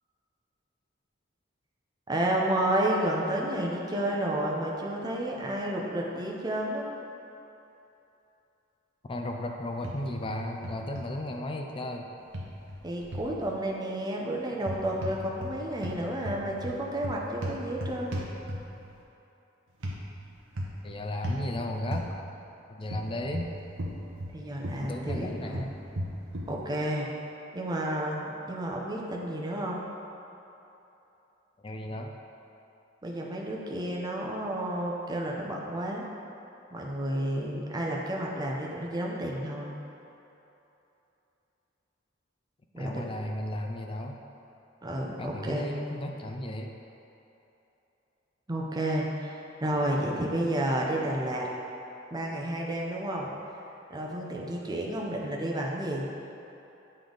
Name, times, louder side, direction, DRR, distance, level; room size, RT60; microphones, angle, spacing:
voice 1, 2.1-6.9 12.8-18.2 24.3-25.7 26.5-27.1 27.5-29.8 33.0-36.0 36.7-39.7 42.7-43.1 44.8-45.7 48.5-51.5 52.1-53.3 53.9-56.1, right 1 dB, 20° right, -2 dB, 0.7 m, -31 dB
voice 2, 9.0-12.1 20.8-22.1 22.7-23.5 24.8-25.7 31.6-32.1 42.8-44.2 45.2-46.7, left 1 dB, 25° left, 3 dB, 0.4 m, -35 dB
sound 1, 9.8-10.3 10.6-11.1 12.3-13.4 14.6-15.6 15.8-18.9 19.8-20.0 20.6-20.9 21.2-21.5 21.9-22.1 22.9-24.4 24.6-26.6, equal, 75° right, 0.9 m, -35 dB
8.9 x 3.3 x 3.9 m, 3.0 s
head